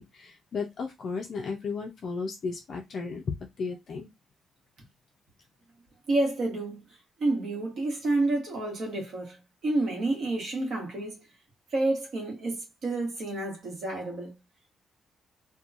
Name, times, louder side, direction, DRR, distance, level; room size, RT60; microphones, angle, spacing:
voice 1, 0.0-4.1, left 4 dB, 40° left, 0.4 m, -34 dB
voice 2, 6.1-11.2 11.7-14.3, right 2 dB, 50° right, 1.1 m, -29 dB
2.8 x 2.2 x 2.4 m
cardioid pair, 180°, 0 cm